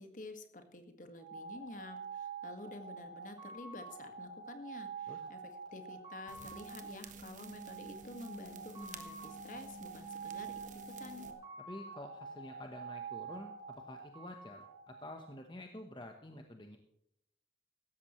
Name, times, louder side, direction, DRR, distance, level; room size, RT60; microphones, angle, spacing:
voice 1, 0.0-5.4 5.7-10.5 11.0-11.3, left 2 dB, 45° left, 7 dB, 1.8 m, -50 dB
sound 1, 1.2-15.6, right 5 dB, 25° right, 4.9 m, -47 dB
sound 2, 6.3-11.3, right 4 dB, 45° right, 1.2 m, -51 dB
voice 2, 11.7-16.8, left 1 dB, 25° left, 4 dB, 1.0 m, -49 dB
16.5 x 13.5 x 3.1 m, 0.79 s
head